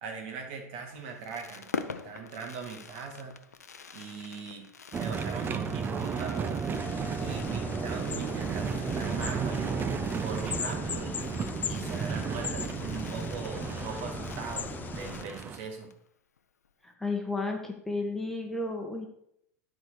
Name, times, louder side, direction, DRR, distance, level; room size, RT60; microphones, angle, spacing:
voice 1, 0.0-3.3 3.9-4.7 4.9-6.8 7.2-11.2 11.7-15.9, right 5 dB, 55° right, 3 dB, 2.1 m, -40 dB
Fireworks, 0.9-16.1 16.4-16.5 16.6-16.9, left 5 dB, 80° left, 0.6 m, -46 dB
sound 1, 4.9-15.6, right 6 dB, 25° right, 0.7 m, -33 dB
sound 2, 6.8-15.2, left 7 dB, 20° left, 0.4 m, -39 dB
voice 2, 16.8-19.1, left 3 dB, 5° left, 1 dB, 1.5 m, -33 dB
11.5 x 4.7 x 5.0 m, 0.74 s
figure-of-eight pair, 85°, 8 cm